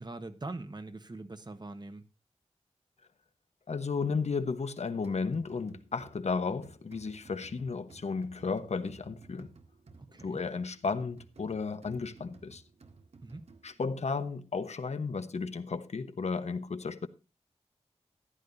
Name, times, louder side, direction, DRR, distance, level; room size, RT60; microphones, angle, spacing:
voice 1, 0.0-2.1 10.1-10.4 13.2-13.4, right 2 dB, 40° right, 1.3 m, -42 dB
voice 2, 3.7-9.5 10.2-12.6 13.6-17.1, left 4 dB, 80° left, 1.1 m, -34 dB
sound 1, 5.0-13.9, right 3 dB, 75° right, 1.8 m, -56 dB
15.0 x 11.5 x 2.7 m
wide cardioid pair, 90°, 11 cm